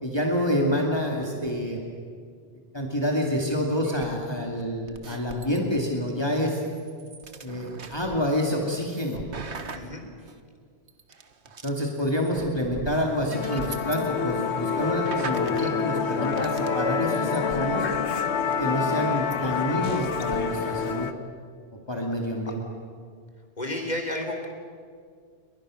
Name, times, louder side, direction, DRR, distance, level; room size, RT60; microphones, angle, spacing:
voice 1, 0.0-1.8 2.7-6.6 7.4-9.2 11.6-17.9 18.6-21.1 21.9-22.6, equal, 25° left, -1 dB, 2.6 m, -27 dB
sound 1, 3.8-5.6 6.0-10.4 10.9-14.0 14.3-14.4 14.7-15.7 16.0-16.9 17.1-18.1 19.3-19.5 19.8-20.4, right 4 dB, 80° right, 1.7 m, -41 dB
Musical instrument, 13.3-21.1, left 6 dB, 80° left, 1.4 m, -27 dB
voice 2, 23.6-24.5, left 1 dB, 40° left, 2 dB, 3.7 m, -31 dB
29.5 x 23.0 x 6.5 m, 2.1 s
omnidirectional pair, 1.1 m